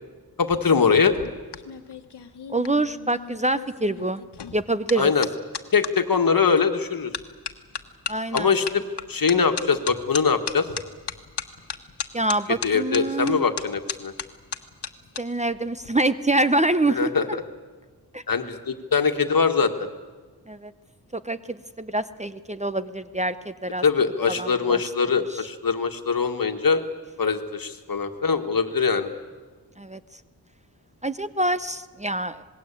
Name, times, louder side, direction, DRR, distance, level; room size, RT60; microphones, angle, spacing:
voice 1, 0.4-1.1 5.0-5.3 5.7-7.1 8.3-8.8 9.1-10.7 12.6-14.1 16.9-17.3 18.3-19.9 23.8-26.8 27.2-29.1, left 5 dB, 60° left, 7 dB, 1.9 m, -22 dB
sound 1, 1.1-5.9 6.6-6.8 7.1-15.2 15.5-15.9, left 7 dB, 80° left, 1.4 m, -35 dB
voice 2, 2.5-4.2 4.5-5.1 8.1-8.5 12.1-13.4 15.2-17.1 18.1-18.2 20.5-20.7 21.1-23.8 24.3-24.8 25.3-25.4 29.8-30.0 31.0-32.4, right 2 dB, 15° right, 13 dB, 0.7 m, -25 dB
27.0 x 20.5 x 8.5 m, 1.4 s
wide cardioid pair, 85°, 40 cm